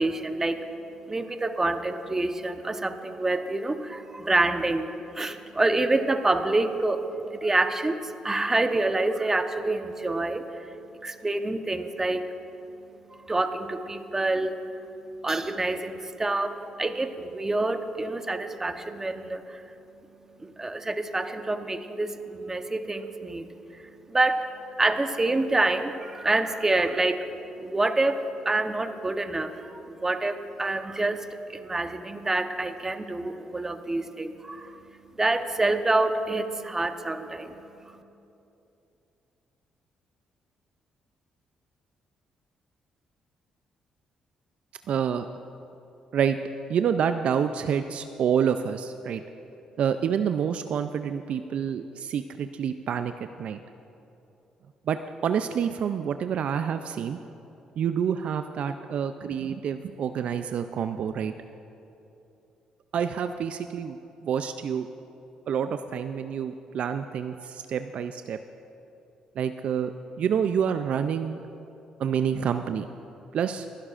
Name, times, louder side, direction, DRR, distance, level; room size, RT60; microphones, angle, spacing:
voice 1, 0.0-38.0, right 2 dB, 20° right, 7 dB, 0.9 m, -28 dB
voice 2, 44.9-45.3 46.1-46.4 46.7-49.2 49.8-53.1 53.4-53.6 54.9-57.2 57.8-61.3 62.9-64.9 65.5-68.4 69.4-69.9 70.2-71.4 72.0-72.9 73.3-73.7, right 8 dB, 65° right, 9 dB, 0.4 m, -28 dB
24.5 x 11.0 x 2.5 m, 2.9 s
supercardioid pair, 65°, 2 cm